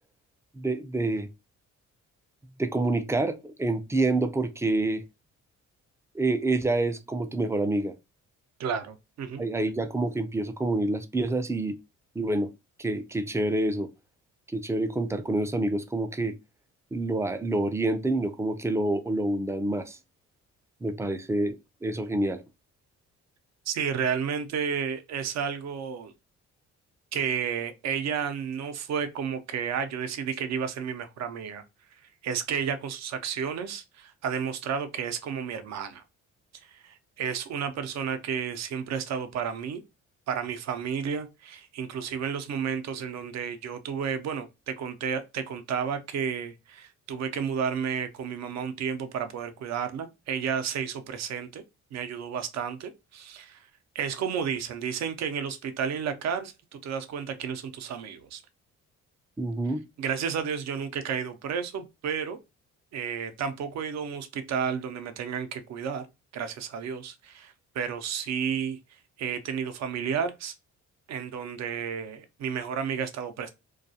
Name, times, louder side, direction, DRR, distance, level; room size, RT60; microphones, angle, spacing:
voice 1, 0.5-1.3 2.6-5.0 6.1-7.9 9.4-11.8 12.2-12.5 12.8-13.9 14.5-16.3 16.9-20.0 20.8-22.4 59.4-59.8, right 2 dB, 10° right, 0.3 m, -27 dB
voice 2, 8.6-9.4 23.7-26.1 27.1-31.6 31.9-36.0 36.6-39.8 40.3-51.6 51.9-53.7 53.9-58.4 60.0-62.4 62.9-66.0 66.3-68.8 69.2-70.5 71.1-73.5, right 7 dB, 65° right, 0.6 m, -32 dB
2.3 x 2.3 x 2.6 m
cardioid pair, 90°, 30 cm